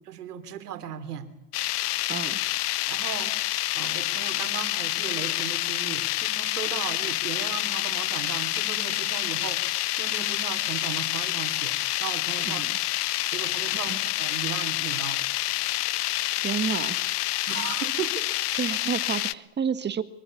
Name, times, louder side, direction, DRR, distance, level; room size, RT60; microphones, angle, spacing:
voice 1, 0.1-1.3 2.9-3.4 3.7-12.6 13.3-15.2 17.5-18.3, right 9 dB, 90° right, 10 dB, 3.3 m, -36 dB
sound 1, 1.5-19.3, left 16 dB, 80° left, 1.0 m, -28 dB
voice 2, 2.1-2.4 12.5-12.8 13.9-14.0 16.3-17.0 18.5-20.0, right 7 dB, 25° right, 13 dB, 1.8 m, -30 dB
25.0 x 23.0 x 8.6 m, 0.78 s
hypercardioid pair, 110°, 45 cm